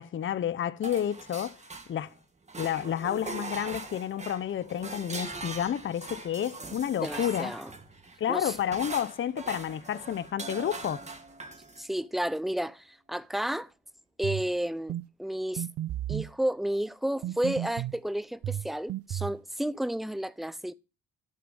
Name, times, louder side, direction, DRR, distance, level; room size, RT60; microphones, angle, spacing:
voice 1, 0.0-1.6 1.9-2.1 2.6-7.5 8.2-11.0, left 10 dB, 40° left, 0.6 m, -30 dB
sound 1, 0.8-2.2 2.5-11.9, right 3 dB, 25° right, 1.8 m, -41 dB
voice 2, 7.0-7.7 8.3-8.5 11.8-13.7 14.2-15.7 16.1-20.7, right 1 dB, ahead, 0.5 m, -32 dB
sound 2, 14.2-14.5 14.9-15.1 15.6-16.3 17.2-18.0 18.4-19.4, right 12 dB, 50° right, 0.4 m, -33 dB
11.5 x 6.7 x 5.3 m
cardioid pair, 90°, 30 cm